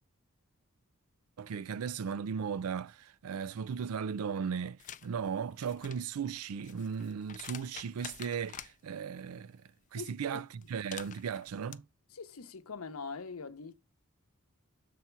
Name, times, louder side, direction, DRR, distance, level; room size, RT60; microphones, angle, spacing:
voice 1, 1.4-9.6 9.9-11.8, right 6 dB, 80° right, 0.4 m, -36 dB
sound 1, 4.8-5.1 5.5-8.7 10.6-11.8, left 9 dB, 35° left, 0.4 m, -48 dB
voice 2, 9.9-10.4 12.1-13.8, left 4 dB, 80° left, 0.8 m, -43 dB
7.2 x 4.1 x 4.5 m
head